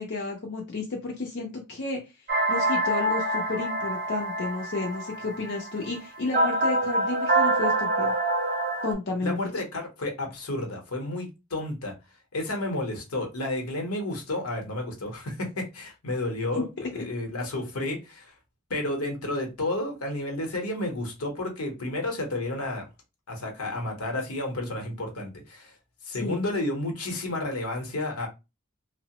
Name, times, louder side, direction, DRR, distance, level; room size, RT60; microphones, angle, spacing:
voice 1, 0.0-2.0 2.5-8.1 8.8-9.4 16.5-16.6 26.2-26.4, left 3 dB, 55° left, 0.5 m, -32 dB
sound 1, 2.3-8.9, right 2 dB, 40° right, 0.6 m, -26 dB
voice 2, 9.2-11.9 12.3-18.3 18.7-22.8 23.3-25.7 26.0-28.3, left 2 dB, 80° left, 0.9 m, -31 dB
2.8 x 2.0 x 2.9 m
head